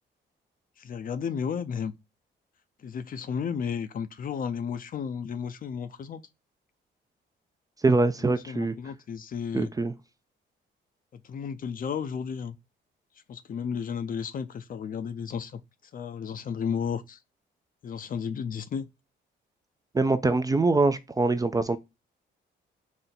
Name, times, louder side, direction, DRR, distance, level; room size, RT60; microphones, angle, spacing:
voice 1, 0.8-1.9 2.8-6.2 8.2-9.7 11.1-12.6 13.3-15.6 15.9-17.2 17.8-18.9, left 7 dB, 45° left, 0.5 m, -33 dB
voice 2, 7.8-8.7 9.5-9.9 19.9-21.8, right 3 dB, 20° right, 0.4 m, -23 dB
4.2 x 2.1 x 3.8 m
cardioid pair, 90°, 20 cm